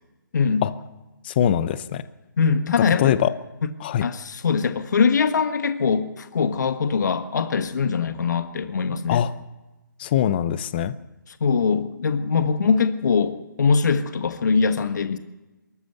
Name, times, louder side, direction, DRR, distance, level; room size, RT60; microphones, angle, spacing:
voice 1, 0.3-0.6 2.4-3.2 4.0-9.2 11.4-15.2, left 5 dB, 55° left, 9 dB, 1.5 m, -22 dB
voice 2, 1.2-2.0 2.8-3.3 3.8-4.0 9.1-9.3 10.0-11.0, left 10 dB, 30° left, 15 dB, 0.8 m, -22 dB
24.0 x 14.0 x 7.9 m, 1.1 s
hypercardioid pair, 155°, 11 cm